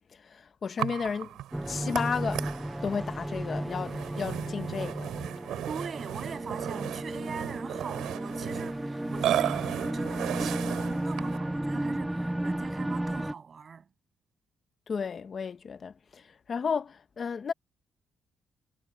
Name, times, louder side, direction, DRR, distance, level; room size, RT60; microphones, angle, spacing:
voice 1, 0.2-1.3 1.7-2.5 2.8-5.1 14.9-16.2 16.5-17.5, left 6 dB, 45° left, 1.1 m, -33 dB
Burping eructation, 0.8-11.5, right 12 dB, 80° right, 4.2 m, -35 dB
sound 1, 1.5-13.3, right 1 dB, 10° right, 0.5 m, -34 dB
voice 2, 5.7-13.9, right 6 dB, 45° right, 7.7 m, -41 dB
cardioid pair, 90°, 0 cm